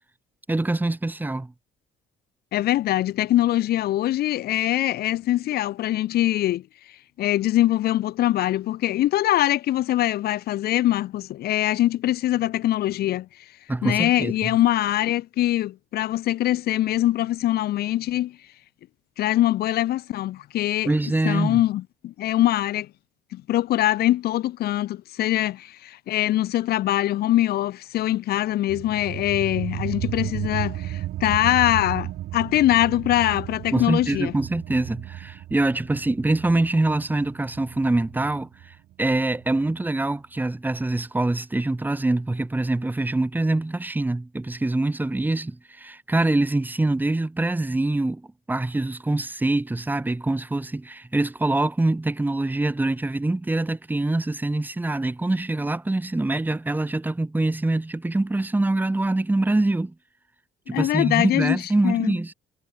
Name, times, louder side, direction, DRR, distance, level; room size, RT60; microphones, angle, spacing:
voice 1, 0.5-1.5 13.7-14.5 20.8-21.6 33.7-48.2 48.5-59.9 60.7-62.3, right 2 dB, 10° right, 2.9 m, -24 dB
voice 2, 2.5-6.6 7.2-13.3 13.8-18.4 19.2-20.9 21.2-22.9 23.3-34.3 60.7-62.2, left 14 dB, 70° left, 1.5 m, -23 dB
sound 1, 28.7-39.8, right 14 dB, 70° right, 7.1 m, -34 dB
cardioid pair, 110°, 17 cm